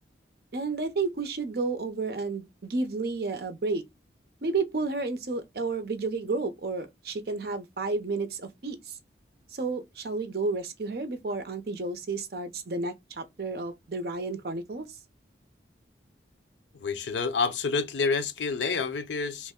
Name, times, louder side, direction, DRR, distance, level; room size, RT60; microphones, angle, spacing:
voice 1, 0.5-3.8 4.4-9.0 9.5-14.9, right 3 dB, 55° right, 0.6 m, -31 dB
voice 2, 16.8-19.5, left 4 dB, 80° left, 0.5 m, -28 dB
3.0 x 2.1 x 3.5 m
head